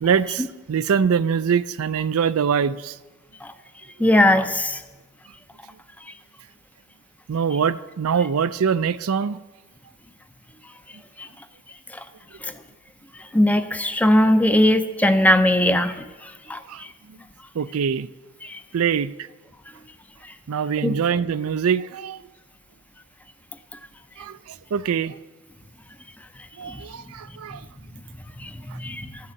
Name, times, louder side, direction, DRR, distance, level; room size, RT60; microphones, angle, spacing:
voice 1, 0.0-3.0 7.3-9.4 16.7-16.8 17.1-17.2 17.5-18.1 18.7-19.3 20.5-22.3 24.2-25.2 26.6-27.6, right 7 dB, 75° right, 0.4 m, -23 dB
voice 2, 4.0-4.8 13.3-15.9 16.2-16.6 18.4-18.6 20.8-20.9 26.7-26.8 28.4-29.1, left 1 dB, 5° left, 0.5 m, -19 dB
13.0 x 6.7 x 8.7 m
head